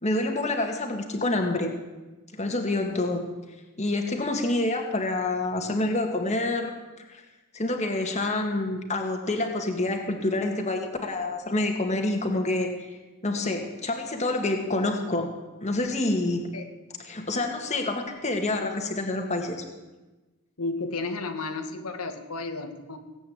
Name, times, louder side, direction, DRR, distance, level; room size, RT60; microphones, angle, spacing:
voice 1, 0.0-1.7 2.4-3.2 3.8-6.7 7.1-7.2 7.5-12.7 13.2-15.3 15.6-16.4 17.1-19.6, left 2 dB, 30° left, 3 dB, 1.9 m, -27 dB
voice 2, 20.6-23.0, left 3 dB, 90° left, 5 dB, 1.7 m, -33 dB
18.0 x 8.7 x 8.7 m, 1.2 s
head